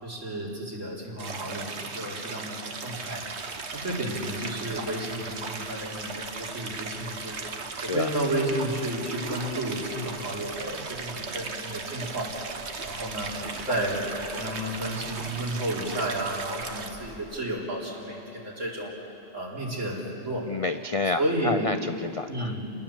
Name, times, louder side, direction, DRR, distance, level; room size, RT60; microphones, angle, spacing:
voice 1, 0.0-7.3 7.8-13.3 13.7-14.1 14.3-18.9 19.3-20.5 21.2-21.7 22.3-22.7, right 1 dB, 75° right, -4 dB, 4.3 m, -32 dB
Stream, 1.2-16.9, right 4 dB, 60° right, 1.5 m, -37 dB
sound 1, 3.1-17.4, right 2 dB, 40° right, 1.5 m, -46 dB
voice 2, 7.8-8.1 20.5-22.5, left 3 dB, 50° left, 9 dB, 0.4 m, -29 dB
29.0 x 19.5 x 7.3 m, 2.9 s
omnidirectional pair, 1.3 m